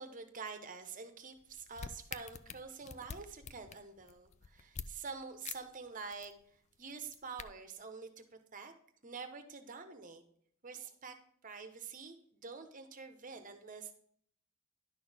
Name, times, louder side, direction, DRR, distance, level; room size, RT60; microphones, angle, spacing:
voice 1, 0.0-8.1 8.5-8.7 9.0-10.2 10.6-11.2 11.4-13.9, right 5 dB, 40° right, 7 dB, 1.0 m, -47 dB
sound 1, 1.4-4.9 5.4-5.6 5.9-6.3 6.9-7.4, left 6 dB, 35° left, 0.4 m, -46 dB
11.0 x 6.2 x 3.5 m, 0.63 s
head